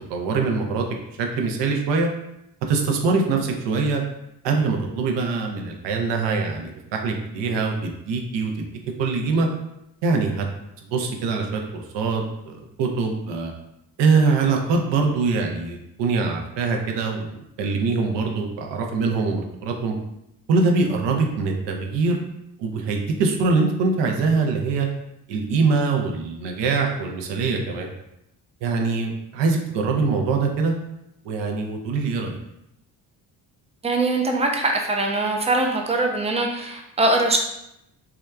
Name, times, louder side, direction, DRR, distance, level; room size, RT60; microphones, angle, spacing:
voice 1, 0.1-0.9 1.2-2.1 2.7-4.0 4.4-8.7 9.0-9.5 10.0-10.5 10.9-13.5 14.0-19.9 20.5-22.2 22.6-24.9 25.3-27.9 28.6-30.8 31.2-32.4, right 4 dB, 65° right, 2 dB, 0.6 m, -23 dB
voice 2, 33.8-37.4, right 2 dB, 15° right, 2 dB, 0.4 m, -22 dB
2.8 x 2.3 x 2.2 m, 0.84 s
hypercardioid pair, 55°, 47 cm